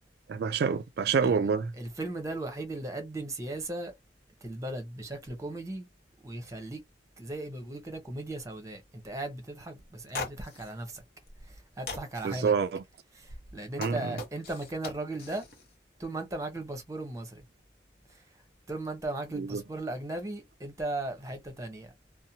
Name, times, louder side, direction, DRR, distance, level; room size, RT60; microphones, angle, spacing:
voice 1, 0.3-1.7 12.2-12.8 13.8-14.2 19.3-19.6, right 6 dB, 60° right, 0.3 m, -27 dB
voice 2, 1.8-3.9 4.4-5.9 6.2-6.8 7.2-11.0 11.5-12.5 13.1-15.5 16.0-17.4 18.1-18.2 18.7-21.9, right 2 dB, 20° right, 0.8 m, -37 dB
sound 1, 9.8-9.9 10.1-10.7 11.3-11.6 11.9-12.4 13.3-15.6, left 3 dB, 60° left, 1.0 m, -39 dB
2.7 x 2.0 x 2.7 m
head